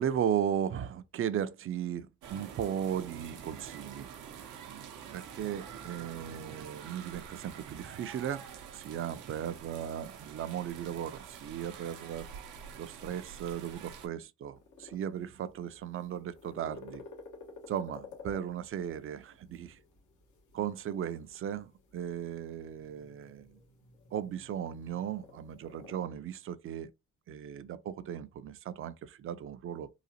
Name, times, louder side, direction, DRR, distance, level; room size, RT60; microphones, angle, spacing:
voice 1, 0.0-4.1 5.1-8.5 8.7-12.3 12.8-17.0 17.7-19.8 20.5-23.5 24.1-26.9 27.3-29.9, right 9 dB, 45° right, 0.5 m, -36 dB
sound 1, 2.2-14.1, right 8 dB, 90° right, 0.8 m, -47 dB
sound 2, 14.5-26.0, left 4 dB, 90° left, 1.3 m, -53 dB
4.0 x 2.4 x 2.7 m
cardioid pair, 90°, 30 cm